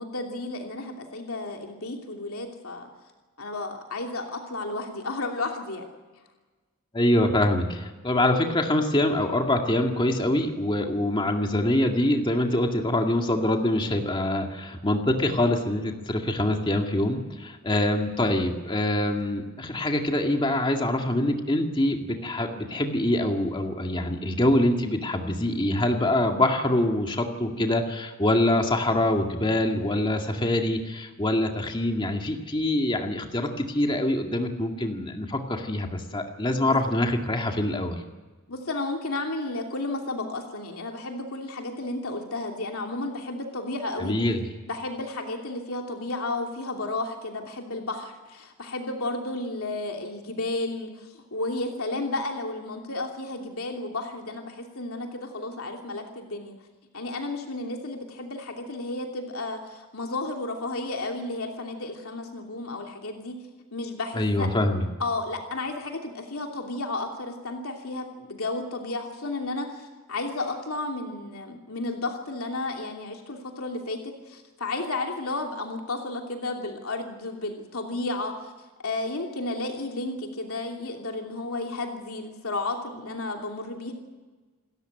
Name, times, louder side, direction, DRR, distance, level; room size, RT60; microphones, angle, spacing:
voice 1, 0.0-2.9 3.4-5.8 28.4-28.7 36.6-36.9 38.5-44.1 44.7-56.5 56.9-63.4 63.7-64.5 65.0-78.5 78.8-83.9, left 2 dB, 80° left, 2 dB, 2.9 m, -32 dB
voice 2, 6.9-38.0 44.0-44.4 64.1-64.8, left 1 dB, 20° left, 3 dB, 2.1 m, -25 dB
28.5 x 14.0 x 9.2 m, 1.2 s
head